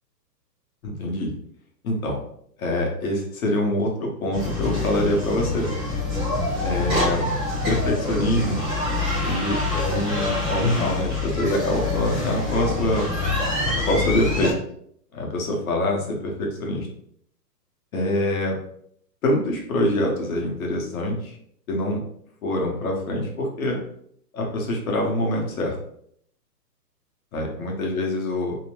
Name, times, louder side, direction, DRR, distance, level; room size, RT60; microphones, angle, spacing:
voice 1, 0.8-1.3 1.8-2.2 2.6-5.7 6.6-7.2 7.7-8.6 9.2-13.1 13.9-14.6 15.1-16.9 17.9-18.6 19.2-21.4 21.7-22.0 22.4-23.8 24.3-25.7 27.3-28.6, left 1 dB, 55° left, 0 dB, 0.9 m, -25 dB
sound 1, 4.3-14.5, left 2 dB, 15° right, 0.4 m, -26 dB
2.8 x 2.0 x 3.0 m, 0.67 s
hypercardioid pair, 155°, 50 cm